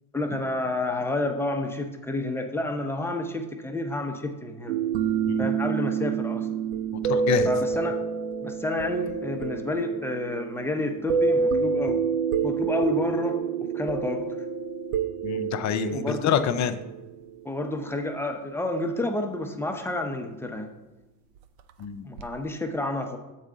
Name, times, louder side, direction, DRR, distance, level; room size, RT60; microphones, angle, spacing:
voice 1, 0.1-4.8 5.4-6.5 7.4-8.0 8.4-12.0 12.4-14.2 15.9-16.3 17.4-20.7 22.0-23.2, left 2 dB, 5° left, 4 dB, 0.8 m, -30 dB
sound 1, 4.7-17.8 22.2-22.4, right 6 dB, 75° right, 0.6 m, -28 dB
voice 2, 7.0-7.5 15.2-16.8 21.8-22.1, left 8 dB, 40° left, 9 dB, 0.6 m, -27 dB
7.2 x 4.7 x 3.9 m, 1.1 s
hypercardioid pair, 80°, 45 cm